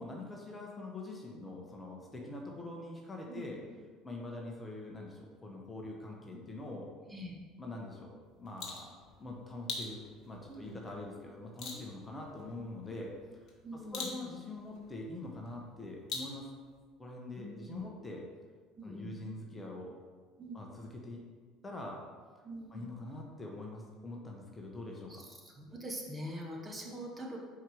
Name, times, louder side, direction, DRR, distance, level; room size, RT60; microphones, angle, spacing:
voice 1, 0.0-3.6 4.0-6.9 7.6-8.1 8.4-13.1 13.9-16.5 17.0-18.2 18.8-19.9 20.5-21.2 21.6-22.0 22.7-25.2, left 2 dB, 20° left, -1 dB, 1.0 m, -44 dB
sound 1, 8.2-16.8, left 3 dB, 50° left, 1.3 m, -46 dB
voice 2, 10.5-10.8 11.7-11.8 12.9-13.0 13.6-14.1 17.4-17.9 18.7-19.1 20.4-20.6 22.4-22.9 25.1-27.4, equal, 20° right, -1 dB, 1.2 m, -44 dB
4.7 x 4.4 x 4.8 m, 1.5 s
figure-of-eight pair, 65°, 0 cm